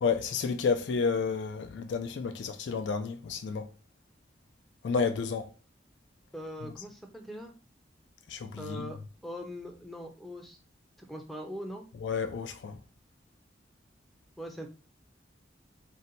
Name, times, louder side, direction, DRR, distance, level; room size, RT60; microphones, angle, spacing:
voice 1, 0.0-3.7 4.8-5.5 8.3-8.9 12.0-12.8, left 5 dB, 90° left, 0.3 m, -31 dB
voice 2, 6.3-7.5 8.6-10.6 11.0-11.9 14.4-14.7, equal, ahead, 0.4 m, -41 dB
2.6 x 2.2 x 3.9 m
head